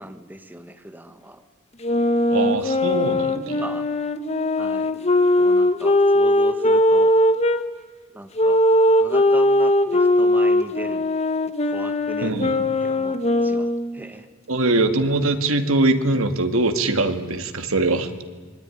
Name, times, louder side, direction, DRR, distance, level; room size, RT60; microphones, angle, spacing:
voice 1, 0.0-1.4 2.3-2.8 3.5-3.9 4.6-5.0 5.4-7.1 8.1-8.6 9.0-11.1 11.7-12.4 12.8-14.3, right 1 dB, 10° right, 7 dB, 1.4 m, -38 dB
sound 1, 1.8-7.6 8.4-14.0, left 1 dB, 30° left, 1.3 m, -19 dB
voice 2, 2.3-3.6 12.2-12.7 14.5-18.1, right 2 dB, 80° right, 7 dB, 2.1 m, -22 dB
26.0 x 22.5 x 10.0 m, 1.4 s
head